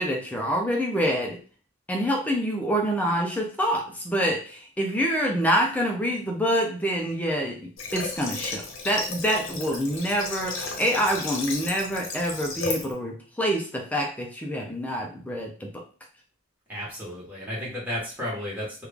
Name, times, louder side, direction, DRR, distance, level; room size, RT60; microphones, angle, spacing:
voice 1, 0.0-1.4 1.9-15.7, equal, 5° left, 1 dB, 0.5 m, -26 dB
Water / Water tap faucet, 7.8-12.9, left 3 dB, 65° left, 0.9 m, -34 dB
voice 2, 16.7-18.9, equal, 10° right, -6 dB, 1.4 m, -33 dB
3.1 x 2.4 x 3.5 m, 0.39 s
head